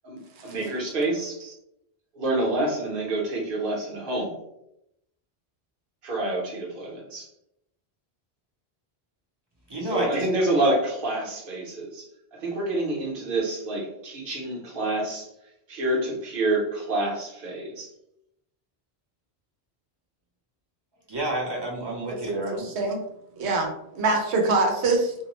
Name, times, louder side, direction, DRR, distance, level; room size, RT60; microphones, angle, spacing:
voice 1, 0.0-1.4 2.1-4.4 6.0-7.3 9.8-12.1 12.3-15.3 15.7-17.9, right 2 dB, 55° right, -2 dB, 0.9 m, -27 dB
voice 2, 9.7-10.3 21.1-22.7, right 1 dB, 30° right, -3 dB, 0.6 m, -29 dB
voice 3, 22.2-23.0 23.4-23.7 23.9-25.1, right 3 dB, 85° right, 2 dB, 0.9 m, -24 dB
2.5 x 2.0 x 2.9 m, 0.81 s
omnidirectional pair, 1.1 m